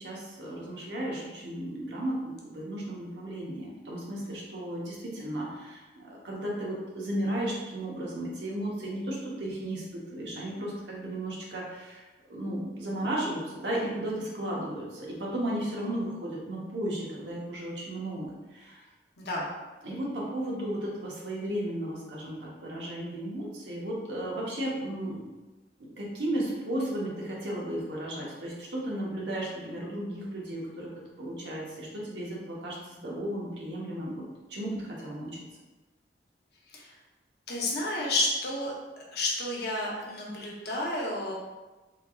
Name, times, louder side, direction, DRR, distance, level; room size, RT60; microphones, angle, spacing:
voice 1, 0.0-12.0 12.3-18.8 19.8-25.2 25.8-30.9 31.2-34.2 34.5-35.4, right 1 dB, 75° right, -4 dB, 1.0 m, -34 dB
voice 2, 19.2-19.5 36.7-36.9 37.5-38.7 39.1-41.3, left 1 dB, 65° left, -3 dB, 0.9 m, -30 dB
3.7 x 3.3 x 2.3 m, 1.2 s
head